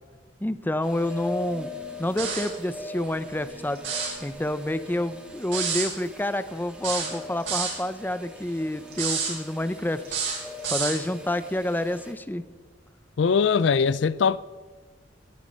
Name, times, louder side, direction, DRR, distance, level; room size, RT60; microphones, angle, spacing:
voice 1, 0.4-1.7 2.0-3.8 4.2-10.0 10.7-12.4, left 1 dB, 10° left, 0.6 m, -28 dB
sound 1, 0.8-12.1, left 1 dB, 5° right, 2.3 m, -42 dB
sound 2, 2.2-2.6 3.8-4.2 5.5-5.9 6.8-7.8 8.9-9.3 10.1-11.0, right 6 dB, 85° right, 5.8 m, -28 dB
voice 2, 13.2-14.4, left 6 dB, 70° left, 0.4 m, -21 dB
20.0 x 9.8 x 5.3 m
head